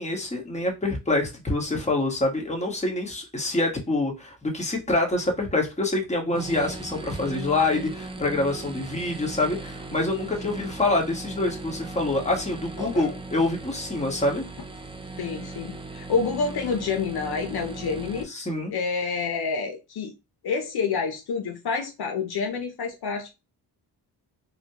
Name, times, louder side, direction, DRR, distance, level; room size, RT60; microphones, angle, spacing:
voice 1, 0.0-14.4 18.3-18.7, left 2 dB, 15° left, 1.2 m, -26 dB
sound 1, 6.3-18.2, right 3 dB, 15° right, 0.4 m, -38 dB
voice 2, 12.8-13.1 15.2-18.3 18.7-20.1 20.4-23.3, left 5 dB, 65° left, 0.6 m, -28 dB
4.1 x 2.2 x 2.9 m
cardioid pair, 100°, 42 cm